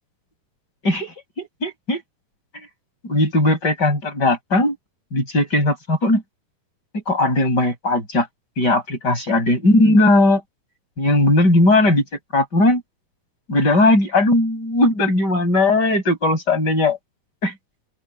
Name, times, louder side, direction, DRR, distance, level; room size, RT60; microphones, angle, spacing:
voice 1, 0.8-2.0 3.0-4.8 5.1-6.2 7.1-8.3 8.6-10.4 11.0-12.0 12.3-12.8 13.5-17.0 17.4-17.5, left 2 dB, 25° left, 8.2 m, -18 dB
open air
omnidirectional pair, 4.6 m